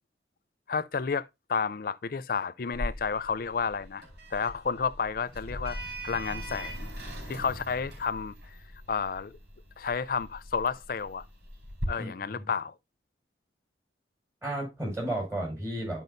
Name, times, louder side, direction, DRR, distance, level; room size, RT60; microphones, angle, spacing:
voice 1, 0.7-4.0 4.3-5.8 6.0-6.9 7.3-8.3 8.9-9.4 9.8-11.2 11.9-12.7, left 5 dB, 50° left, 0.4 m, -31 dB
Sliding door, 2.7-11.9, equal, 75° right, 4.6 m, -40 dB
voice 2, 12.0-12.5 14.4-16.0, right 1 dB, 15° right, 5.0 m, -33 dB
12.5 x 5.4 x 2.6 m
head